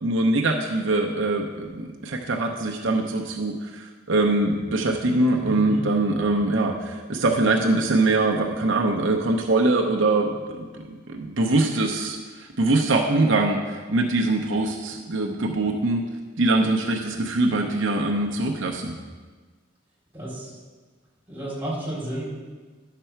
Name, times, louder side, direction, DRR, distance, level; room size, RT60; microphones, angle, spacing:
voice 1, 0.0-16.1 16.4-19.0, right 2 dB, 70° right, 1 dB, 0.8 m, -23 dB
voice 2, 5.5-5.8 20.1-20.6 21.3-22.2, right 1 dB, 10° right, -6 dB, 3.5 m, -32 dB
11.0 x 6.8 x 4.5 m, 1.4 s
head